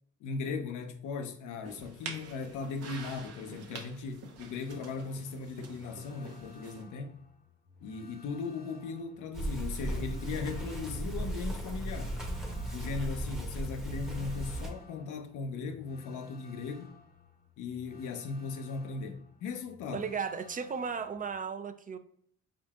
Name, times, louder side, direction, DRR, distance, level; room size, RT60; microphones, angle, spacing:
voice 1, 0.2-7.2 7.8-12.2 12.7-16.9 17.6-20.1, left 4 dB, 85° left, 0.7 m, -38 dB
sound 1, 1.7-6.8, right 4 dB, 55° right, 0.8 m, -47 dB
sound 2, 4.7-21.3, left 4 dB, 30° left, 0.7 m, -57 dB
sound 3, 9.3-14.7, right 1 dB, ahead, 0.8 m, -36 dB
voice 2, 19.9-22.0, right 6 dB, 30° right, 0.4 m, -35 dB
4.4 x 3.8 x 2.4 m
cardioid pair, 90°, 30 cm